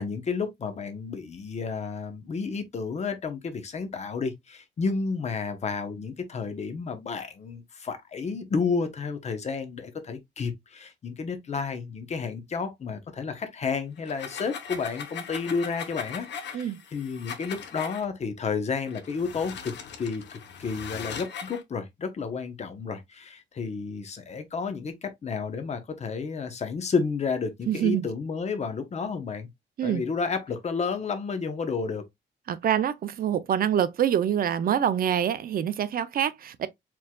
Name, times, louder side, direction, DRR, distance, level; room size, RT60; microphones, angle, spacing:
voice 1, 0.0-19.7 20.0-29.5 29.8-32.0, left 5 dB, 35° left, 0.8 m, -31 dB
sound 1, 14.0-18.0 18.9-21.6, left 7 dB, 65° left, 0.8 m, -39 dB
voice 2, 27.7-28.1 29.8-30.0 32.5-36.7, right 9 dB, 50° right, 0.5 m, -25 dB
4.6 x 3.6 x 2.2 m
wide cardioid pair, 180°, 20 cm